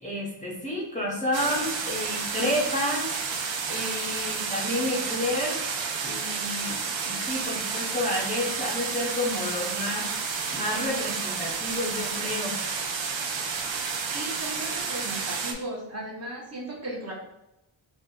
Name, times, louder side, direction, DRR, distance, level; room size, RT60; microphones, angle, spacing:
voice 1, 0.0-3.1 3.7-5.6 6.0-6.8 7.0-10.0 10.5-12.5, left 1 dB, 15° left, -5 dB, 0.7 m, -30 dB
sound 1, 1.3-15.5, right 5 dB, 65° right, 0.7 m, -31 dB
voice 2, 14.1-17.1, right 1 dB, 30° right, -3 dB, 1.0 m, -36 dB
4.1 x 2.4 x 3.7 m, 0.88 s
wide cardioid pair, 150°, 48 cm